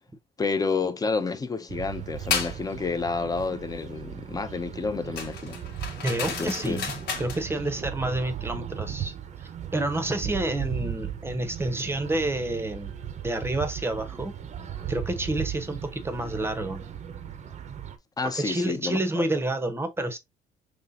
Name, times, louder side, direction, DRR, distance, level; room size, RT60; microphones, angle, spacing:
voice 1, 0.4-5.6 6.2-6.8 18.2-19.2, left 4 dB, 20° left, 0.7 m, -29 dB
sound 1, 1.7-18.0, right 9 dB, 45° right, 0.7 m, -37 dB
sound 2, 2.3-2.6 5.2-7.4, left 6 dB, 75° left, 1.3 m, -32 dB
voice 2, 6.0-12.9 13.2-14.3 14.9-16.8 18.2-20.2, right 1 dB, 15° right, 0.8 m, -29 dB
5.4 x 3.2 x 2.6 m
cardioid pair, 110°, 17 cm